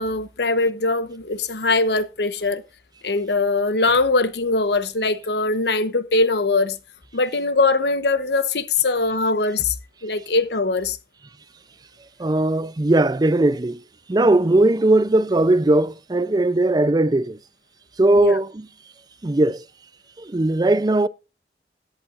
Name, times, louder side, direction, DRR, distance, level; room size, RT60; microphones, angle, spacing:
voice 1, 0.0-2.6 3.0-6.8 7.1-9.7 10.0-11.0 18.2-18.4, left 3 dB, 70° left, 1.0 m, -21 dB
voice 2, 12.2-13.8 14.1-17.4 18.0-18.7 19.2-19.6 20.2-21.1, right 2 dB, 25° right, 0.5 m, -18 dB
16.5 x 11.5 x 2.5 m
head